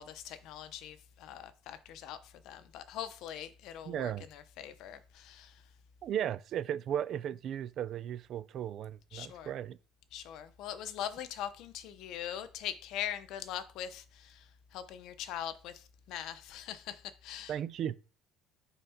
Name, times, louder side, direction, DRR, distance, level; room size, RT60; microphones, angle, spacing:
voice 1, 0.0-5.6 9.1-9.5 10.1-17.5, left 10 dB, 60° left, 0.7 m, -42 dB
voice 2, 3.8-4.3 6.0-9.8 17.5-18.0, right 10 dB, 45° right, 0.3 m, -36 dB
5.6 x 3.9 x 5.6 m
cardioid pair, 165°, 0 cm